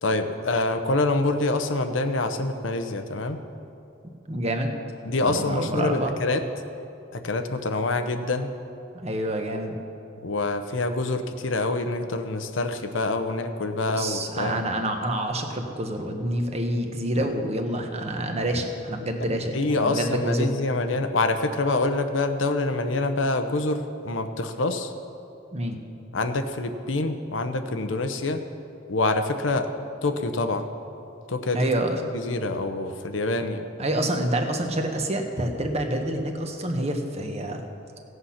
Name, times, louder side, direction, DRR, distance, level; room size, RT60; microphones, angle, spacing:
voice 1, 0.0-3.4 5.0-6.4 7.1-8.5 10.2-14.6 19.5-24.9 26.1-28.4 28.9-29.7 30.0-30.7 31.3-31.7 32.1-33.7, left 2 dB, 75° left, 7 dB, 0.8 m, -26 dB
voice 2, 4.3-4.7 5.3-6.1 8.9-9.8 13.9-20.5 25.5-25.8 31.5-32.1 33.8-37.6, right 1 dB, 35° right, 4 dB, 1.1 m, -27 dB
15.5 x 8.0 x 5.8 m, 2.7 s
head